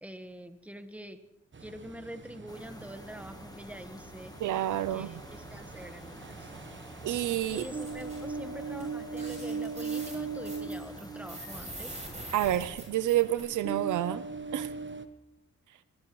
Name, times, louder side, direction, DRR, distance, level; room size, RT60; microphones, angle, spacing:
voice 1, 0.0-1.2 1.6-4.4 4.9-6.5 7.5-12.0, equal, 5° right, 9 dB, 1.3 m, -45 dB
Ocean, 1.5-15.1, right 4 dB, 40° right, 1.1 m, -40 dB
sound 1, 2.5-12.2, left 1 dB, 15° left, 1.3 m, -50 dB
voice 2, 4.4-5.1 7.0-7.7 12.3-14.2 14.5-14.7, right 13 dB, 90° right, 16 dB, 0.5 m, -29 dB
sound 2, 7.4-8.2 8.8-8.9 9.1-13.4, right 1 dB, 25° right, 7.9 m, -44 dB
22.5 x 19.0 x 3.1 m, 0.99 s
cardioid pair, 60°, 30 cm